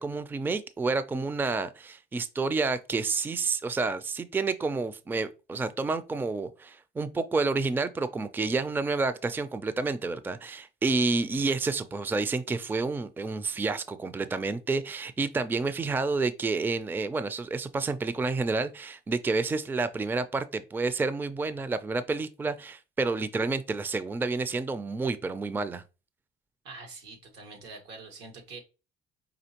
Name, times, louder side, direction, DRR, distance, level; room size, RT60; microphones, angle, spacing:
voice 1, 0.0-25.8, right 3 dB, 10° right, 0.4 m, -29 dB
voice 2, 26.6-28.6, right 3 dB, 90° right, 1.6 m, -45 dB
5.1 x 3.0 x 2.9 m
cardioid pair, 110°, 17 cm